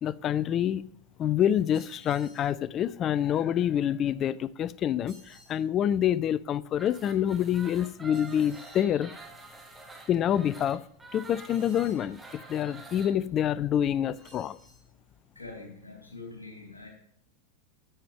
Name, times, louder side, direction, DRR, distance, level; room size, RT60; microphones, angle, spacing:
voice 1, 0.0-0.9 1.2-9.1 10.1-10.8 11.1-14.6, left 10 dB, 30° left, 0.4 m, -27 dB
sound 1, 1.7-2.5 5.1-5.6 8.1-8.8 11.5-12.1 14.1-14.9, right 2 dB, 40° right, 4.4 m, -56 dB
sound 2, 6.7-13.1, right 3 dB, 10° right, 1.4 m, -47 dB
voice 2, 15.4-16.9, left 3 dB, 80° left, 3.5 m, -45 dB
11.0 x 7.6 x 3.6 m
figure-of-eight pair, 90°, 0 cm